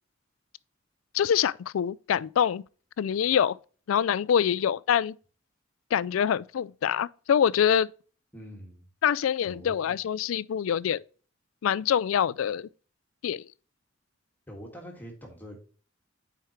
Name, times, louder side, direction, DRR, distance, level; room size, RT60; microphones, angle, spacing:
voice 1, 1.1-2.6 3.0-3.6 3.9-5.2 5.9-7.9 9.0-11.0 11.6-12.7 13.2-13.4, left 8 dB, 85° left, 0.3 m, -25 dB
voice 2, 8.3-8.8 9.4-10.0 14.5-15.6, equal, 10° left, 1.7 m, -44 dB
9.2 x 4.6 x 3.0 m
head